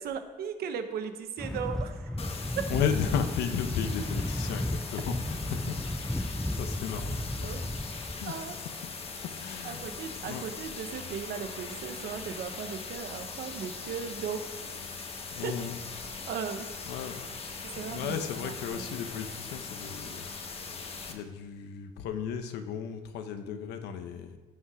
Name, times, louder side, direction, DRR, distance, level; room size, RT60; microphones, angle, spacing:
voice 1, 0.0-2.2 2.6-2.7 7.4-7.7 8.3-8.6 9.6-14.4 15.0-15.1 15.4-15.5 16.3-16.7 17.7-19.0, right 7 dB, 65° right, 8 dB, 1.1 m, -37 dB
sound 1, 1.4-8.3, left 1 dB, 5° left, 0.3 m, -34 dB
sound 2, 2.2-21.1, left 4 dB, 35° left, 1.3 m, -40 dB
voice 2, 2.7-5.8 6.0-7.5 8.2-8.3 9.4-9.9 10.2-10.4 15.3-15.8 16.9-17.3 17.7-20.2 20.5-20.8 21.1-24.4, left 7 dB, 85° left, 7 dB, 1.1 m, -35 dB
16.0 x 5.8 x 4.9 m, 1.3 s
cardioid pair, 110°, 17 cm